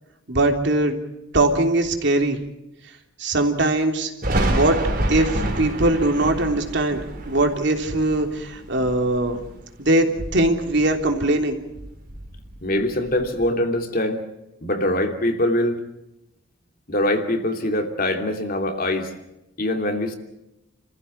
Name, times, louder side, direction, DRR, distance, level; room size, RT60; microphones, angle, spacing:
voice 1, 0.3-0.9 1.3-2.4 3.2-4.1 4.5-4.8 5.1-9.4 9.8-11.6, right 2 dB, 60° right, 4 dB, 3.3 m, -21 dB
Thunder, 4.2-9.7 10.0-11.5 11.7-13.5, right 1 dB, 45° right, 3.7 m, -28 dB
voice 2, 12.6-14.2 14.6-15.8 16.9-19.1 19.6-20.2, left 1 dB, 45° left, 5 dB, 2.8 m, -23 dB
29.5 x 15.0 x 8.6 m, 0.90 s
head